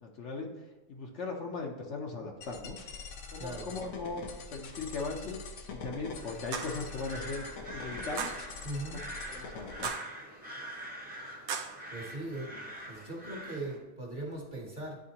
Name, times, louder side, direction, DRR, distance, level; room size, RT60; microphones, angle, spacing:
voice 1, 0.0-0.5 0.9-2.8 3.3-4.2 4.5-5.4 5.7-7.5 7.7-8.4 8.9-9.0 9.3-9.9, left 3 dB, 60° left, 1 dB, 1.0 m, -38 dB
sound 1, 2.4-9.9, left 4 dB, 85° left, 1.2 m, -45 dB
voice 2, 3.4-3.7 8.6-9.0 11.9-12.6 12.9-15.0, right 1 dB, 40° right, -1 dB, 1.1 m, -39 dB
sound 2, 6.0-13.8, right 1 dB, 10° right, 0.8 m, -45 dB
sound 3, 6.5-6.8 8.2-8.5 9.8-10.2 11.5-11.8, right 6 dB, 90° right, 1.0 m, -36 dB
9.6 x 3.6 x 2.9 m, 1.2 s
omnidirectional pair, 1.5 m